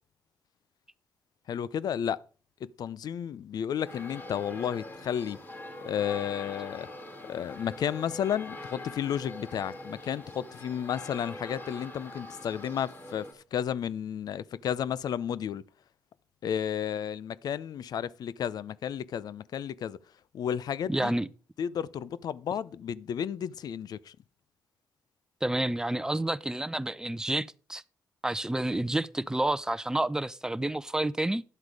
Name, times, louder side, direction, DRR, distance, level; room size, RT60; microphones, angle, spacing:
voice 1, 1.5-2.2 2.6-5.4 5.8-6.9 7.2-15.6 16.4-20.0 20.3-21.1 21.6-24.2, left 9 dB, 70° left, 0.6 m, -32 dB
sound 1, 3.8-13.3, left 2 dB, 30° left, 3.8 m, -43 dB
voice 2, 20.9-21.3 25.4-27.8 28.2-31.4, right 1 dB, 10° right, 0.7 m, -29 dB
11.0 x 8.0 x 4.9 m
cardioid pair, 70°, 7 cm